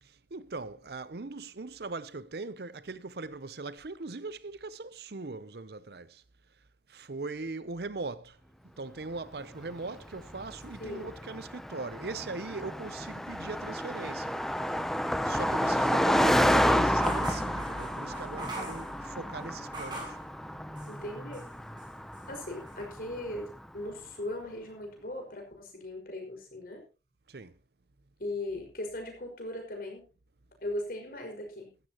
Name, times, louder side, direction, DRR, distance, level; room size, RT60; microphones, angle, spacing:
voice 1, 0.0-6.2 6.9-8.4 8.8-14.9 15.2-20.2 27.3-27.6, right 3 dB, 60° right, 0.7 m, -40 dB
Car passing by, 9.8-23.5, equal, ahead, 0.7 m, -30 dB
sound 1, 17.0-20.2 20.7-21.5 21.8-22.8, right 2 dB, 25° right, 7.4 m, -43 dB
voice 2, 20.9-21.5 22.3-26.8 28.2-30.0 30.6-31.7, left 1 dB, 50° left, 5.5 m, -38 dB
16.0 x 14.0 x 3.0 m
head